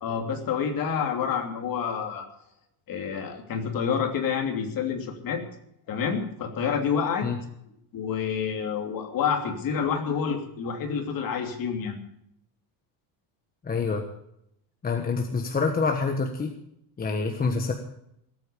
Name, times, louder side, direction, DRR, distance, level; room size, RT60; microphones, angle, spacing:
voice 1, 0.0-2.3 2.9-5.4 5.9-7.3 7.9-12.0, left 7 dB, 45° left, 4 dB, 2.9 m, -28 dB
voice 2, 13.6-14.0 14.8-16.5 17.0-17.7, left 4 dB, 20° left, 4 dB, 1.3 m, -26 dB
18.5 x 8.8 x 6.8 m, 0.75 s
cardioid pair, 145°, 49 cm